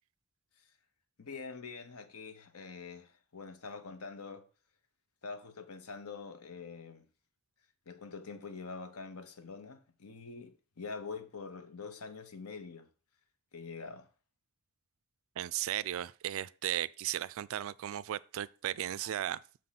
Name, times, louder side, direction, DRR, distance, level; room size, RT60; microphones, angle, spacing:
voice 1, 1.2-4.4 5.2-7.1 7.9-12.9 13.5-14.1, left 4 dB, 75° left, 0.9 m, -45 dB
voice 2, 15.4-19.4, right 12 dB, 65° right, 0.3 m, -36 dB
6.3 x 3.8 x 5.7 m
head